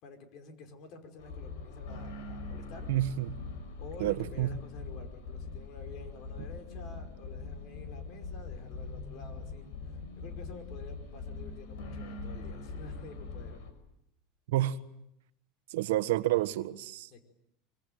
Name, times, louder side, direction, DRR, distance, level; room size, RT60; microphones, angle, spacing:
voice 1, 0.0-2.9 3.8-13.6 17.1-17.2, left 4 dB, 45° left, 6 dB, 5.1 m, -49 dB
sound 1, 1.2-13.7, left 3 dB, 70° left, 6.3 m, -42 dB
voice 2, 2.9-3.3 4.0-4.6 14.5-14.8 15.7-17.1, right 14 dB, 85° right, 13 dB, 1.4 m, -29 dB
25.5 x 25.0 x 9.2 m, 0.79 s
supercardioid pair, 165°, 0 cm